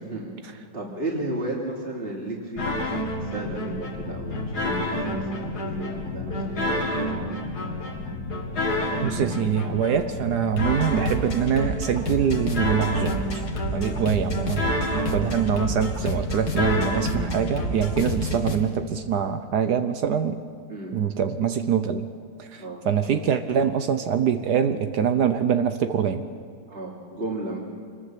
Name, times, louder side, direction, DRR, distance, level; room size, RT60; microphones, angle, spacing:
voice 1, 0.0-7.4 13.8-14.1 20.7-21.0 22.6-22.8 26.7-27.6, right 1 dB, 35° right, -2 dB, 3.2 m, -34 dB
sound 1, 2.6-18.6, left 1 dB, 70° left, 2.8 m, -28 dB
voice 2, 9.0-13.4 13.7-20.4 20.9-22.0 22.4-26.2, right 7 dB, 75° right, 8 dB, 1.5 m, -24 dB
26.0 x 21.0 x 7.5 m, 2.3 s
omnidirectional pair, 1.8 m